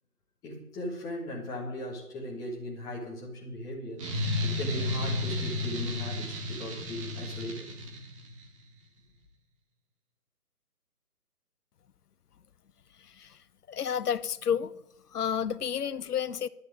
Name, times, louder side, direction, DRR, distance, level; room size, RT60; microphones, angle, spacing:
voice 1, 0.4-4.1 4.4-7.7, left 1 dB, 5° left, 1.5 m, -38 dB
sound 1, 4.0-8.4, left 2 dB, 20° right, 1.5 m, -32 dB
voice 2, 13.7-14.7 15.1-16.5, left 8 dB, 75° left, 0.8 m, -30 dB
10.5 x 6.7 x 9.2 m
figure-of-eight pair, 150°, 46 cm